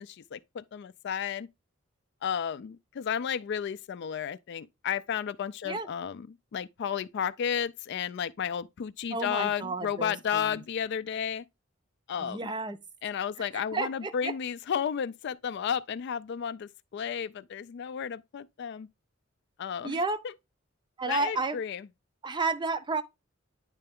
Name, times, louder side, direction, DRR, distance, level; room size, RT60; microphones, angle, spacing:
voice 1, 0.0-1.5 2.2-11.4 12.1-12.5 13.0-18.9 19.6-20.3 21.1-21.9, left 8 dB, 55° left, 0.3 m, -33 dB
voice 2, 9.1-10.6 12.2-12.8 13.4-14.3 19.8-20.2 21.0-21.6 22.2-23.0, right 3 dB, 25° right, 0.5 m, -32 dB
9.8 x 3.3 x 3.5 m
head